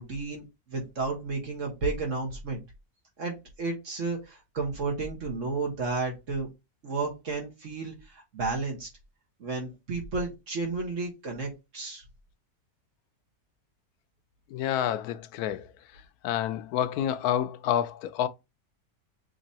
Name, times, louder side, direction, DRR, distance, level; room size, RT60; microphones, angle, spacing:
voice 1, 0.0-2.6 3.2-6.5 6.8-8.9 9.4-12.0, right 3 dB, 55° right, 1.6 m, -32 dB
voice 2, 14.5-15.7 16.2-18.3, left 10 dB, 80° left, 1.1 m, -28 dB
6.4 x 2.9 x 2.8 m
omnidirectional pair, 1.6 m